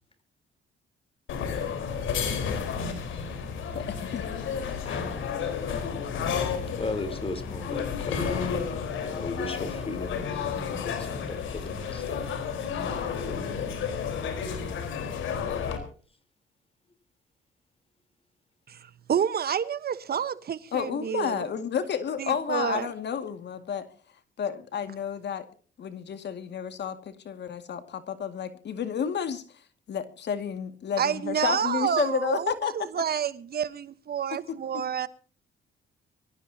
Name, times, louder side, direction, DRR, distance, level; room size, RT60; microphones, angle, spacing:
sound 1, 1.3-15.8, left 6 dB, 80° left, 4.3 m, -31 dB
voice 1, 3.7-4.2 20.7-23.9 24.4-25.5 25.8-32.7 34.5-34.6, left 7 dB, 60° left, 2.2 m, -31 dB
voice 2, 6.8-12.2, left 2 dB, 30° left, 3.8 m, -37 dB
voice 3, 18.7-21.5 22.2-22.9 31.0-35.1, right 8 dB, 50° right, 1.2 m, -29 dB
24.0 x 16.0 x 2.8 m
cardioid pair, 90°, 20 cm